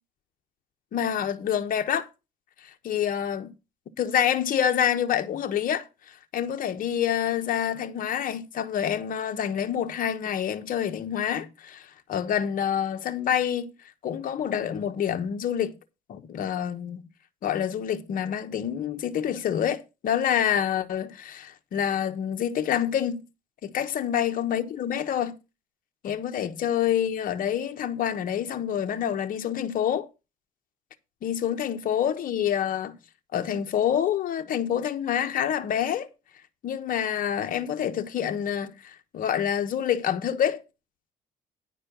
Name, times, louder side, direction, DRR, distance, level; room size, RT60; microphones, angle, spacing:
voice 1, 0.9-2.1 2.6-3.5 4.0-13.7 14.0-15.7 16.1-17.1 17.4-23.2 23.6-25.4 26.0-30.1 31.2-33.0 33.3-36.1 36.6-40.6, left 9 dB, 55° left, 1.2 m, -27 dB
10.0 x 4.3 x 6.8 m
cardioid pair, 110°, 17 cm